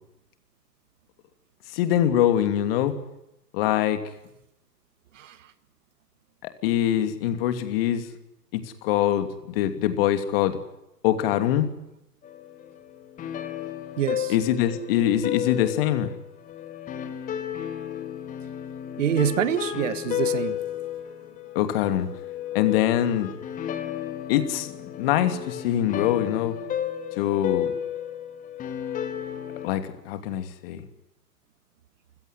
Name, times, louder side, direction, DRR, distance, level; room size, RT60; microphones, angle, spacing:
voice 1, 1.7-2.9 3.5-4.0 6.4-8.0 8.5-10.6 11.0-11.7 14.3-16.1 21.5-22.1 22.5-23.3 24.3-24.7 25.0-26.6 27.2-27.7 29.6-30.9, left 11 dB, 35° left, 9 dB, 2.8 m, -23 dB
sound 1, 12.2-29.7, left 10 dB, 15° left, 2.3 m, -33 dB
voice 2, 14.0-14.3 19.0-20.6, right 9 dB, 50° right, 14 dB, 1.7 m, -26 dB
29.0 x 16.5 x 9.7 m, 0.88 s
figure-of-eight pair, 125°, 49 cm